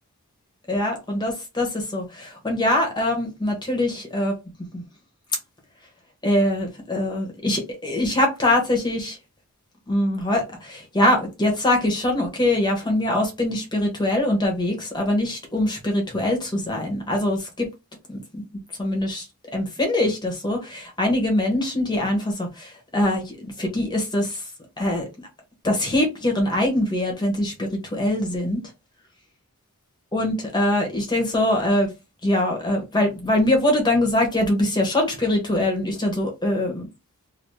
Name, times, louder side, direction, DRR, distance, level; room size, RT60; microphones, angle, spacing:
voice 1, 0.7-4.4 4.7-4.8 6.2-9.2 9.9-17.7 18.1-18.4 18.8-19.2 19.5-24.4 24.8-25.0 25.6-28.6 30.1-31.9 32.2-36.9, left 1 dB, 20° left, 1.2 m, -23 dB
2.9 x 2.8 x 3.2 m
head